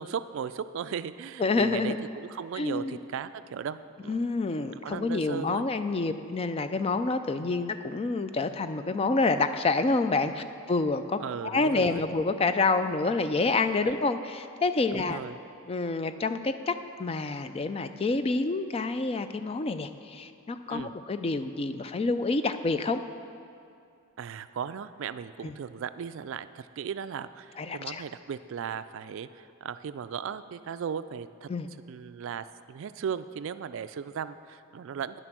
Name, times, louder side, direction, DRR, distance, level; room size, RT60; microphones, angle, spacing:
voice 1, 0.0-4.2 4.8-5.7 11.2-12.1 14.9-15.4 20.7-20.9 24.2-31.5 31.9-35.2, right 7 dB, 60° right, 13 dB, 0.3 m, -37 dB
voice 2, 1.4-2.0 2.6-3.0 4.1-15.2 15.7-23.0 25.4-25.5 27.6-28.0 31.5-31.7, left 3 dB, 25° left, 10 dB, 0.3 m, -28 dB
10.0 x 7.7 x 6.0 m, 2.5 s
head